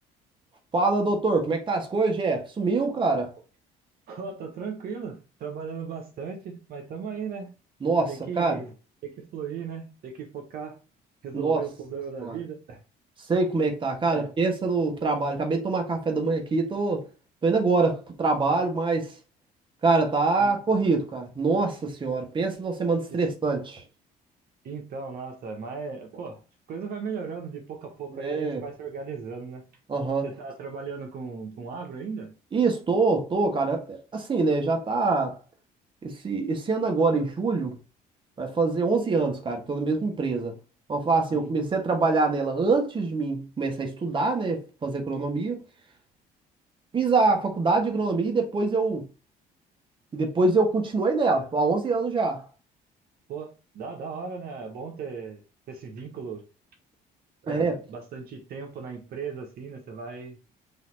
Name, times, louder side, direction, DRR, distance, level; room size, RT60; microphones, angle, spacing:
voice 1, 0.7-3.3 7.8-8.6 11.3-11.6 12.2-12.4 13.3-17.1 17.4-19.1 19.8-23.8 28.2-28.6 29.9-30.3 32.5-35.4 36.0-37.7 38.4-40.5 40.9-45.6 46.9-49.0 50.1-52.4 57.5-57.8, right 3 dB, 30° right, 1.4 m, -25 dB
voice 2, 4.1-7.5 8.1-8.7 9.0-10.8 11.2-12.8 14.1-14.3 20.4-20.6 23.1-23.2 24.6-26.4 26.7-29.6 30.2-32.4 41.3-41.5 53.3-56.4 57.4-60.4, right 5 dB, 65° right, 1.2 m, -37 dB
4.1 x 2.9 x 3.9 m
cardioid pair, 110°, 17 cm